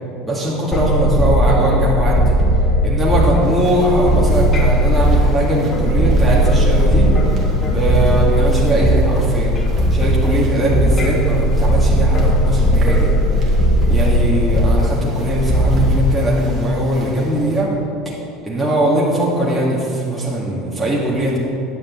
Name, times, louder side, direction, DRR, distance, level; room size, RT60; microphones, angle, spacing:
voice 1, 0.2-2.4 2.8-7.1 7.7-9.6 9.9-13.1 13.9-17.7 18.4-21.4, right 1 dB, 5° right, -7 dB, 2.2 m, -20 dB
sound 1, 0.7-16.0, equal, 30° left, 1.3 m, -16 dB
sound 2, 3.4-17.6, right 1 dB, 40° right, 2.0 m, -33 dB
9.7 x 5.4 x 8.2 m, 2.6 s
supercardioid pair, 110°, 0 cm